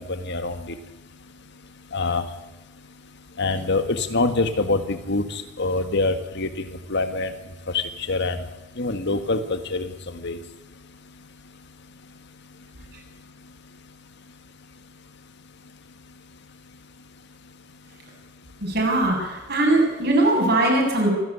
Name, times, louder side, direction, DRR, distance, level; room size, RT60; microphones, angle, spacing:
voice 1, 0.1-0.6 1.9-2.2 3.4-7.3 7.7-8.4 8.8-9.9 10.2-10.4, left 3 dB, 60° left, 9 dB, 1.7 m, -25 dB
voice 2, 18.6-21.1, right 2 dB, 55° right, 0 dB, 7.6 m, -20 dB
26.0 x 12.0 x 10.0 m, 1.0 s
head